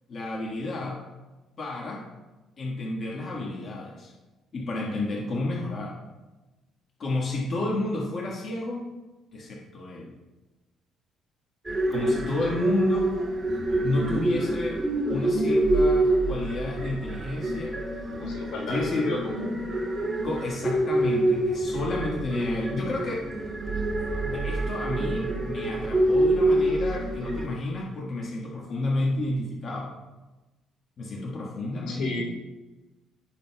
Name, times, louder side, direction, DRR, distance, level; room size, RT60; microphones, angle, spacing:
voice 1, 0.1-1.0 1.6-2.0 2.6-4.1 4.5-5.9 7.0-8.9 9.3-10.1 11.9-13.1 13.8-14.8 15.1-17.8 18.7-19.2 20.2-23.3 24.2-29.9 31.0-32.2, left 2 dB, 45° left, -3 dB, 1.5 m, -31 dB
sound 1, 11.6-27.5, right 1 dB, 20° right, 2.3 m, -26 dB
voice 2, 18.2-19.5 31.9-32.2, left 2 dB, 85° left, -1 dB, 3.1 m, -34 dB
15.5 x 6.4 x 2.3 m, 1.1 s
cardioid pair, 110°, 0 cm